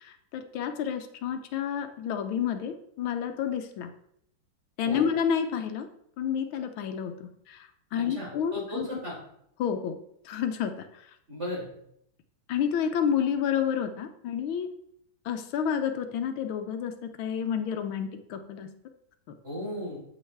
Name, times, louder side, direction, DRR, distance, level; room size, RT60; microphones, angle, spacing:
voice 1, 0.0-3.9 4.8-5.9 6.2-8.9 9.6-10.0 10.2-10.9 12.5-14.7 15.2-16.9 17.2-18.7, left 8 dB, 90° left, 7 dB, 1.6 m, -30 dB
voice 2, 8.1-9.2 11.3-11.7 19.4-20.0, left 1 dB, 35° right, -5 dB, 4.2 m, -35 dB
8.8 x 8.0 x 3.4 m, 0.73 s
omnidirectional pair, 2.2 m